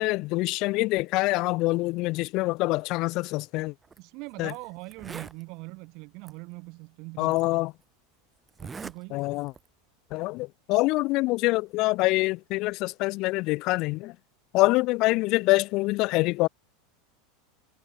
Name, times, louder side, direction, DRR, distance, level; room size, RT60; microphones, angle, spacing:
voice 1, 0.0-3.7 4.4-4.5 7.2-7.7 9.1-9.5 10.1-14.1 14.5-16.5, left 22 dB, 55° left, 0.6 m, -25 dB
Zipper (clothing), 3.8-4.0 4.5-4.6 4.8-5.4 6.3-6.4 7.3-7.4 8.5-9.0 9.3-9.7, right 5 dB, 20° right, 1.8 m, -41 dB
voice 2, 4.0-7.6 8.6-9.2 15.0-15.1, right 27 dB, 55° right, 3.2 m, -42 dB
hypercardioid pair, 105°, 0 cm